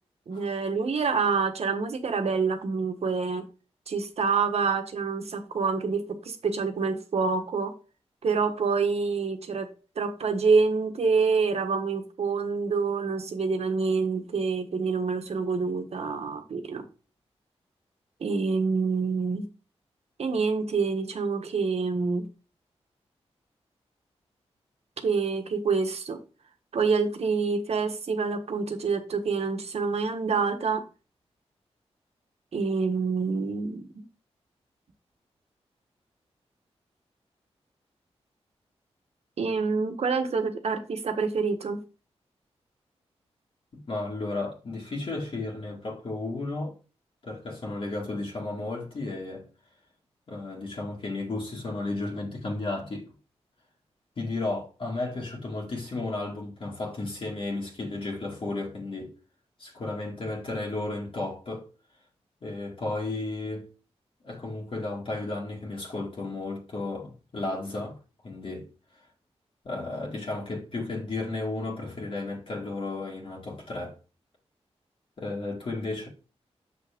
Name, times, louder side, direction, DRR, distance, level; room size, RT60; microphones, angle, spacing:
voice 1, 0.3-3.4 3.9-7.7 8.2-16.9 18.2-19.5 20.2-22.2 25.0-26.2 26.7-30.8 32.5-34.0 39.4-41.8, right 4 dB, 70° right, 1.3 m, -27 dB
voice 2, 43.7-46.7 47.2-49.5 50.3-53.1 54.2-59.1 59.6-61.7 62.4-63.7 64.2-68.0 68.2-68.7 69.6-74.0 75.2-76.1, left 2 dB, 55° left, 2.2 m, -33 dB
7.2 x 6.0 x 3.6 m
wide cardioid pair, 105°, 11 cm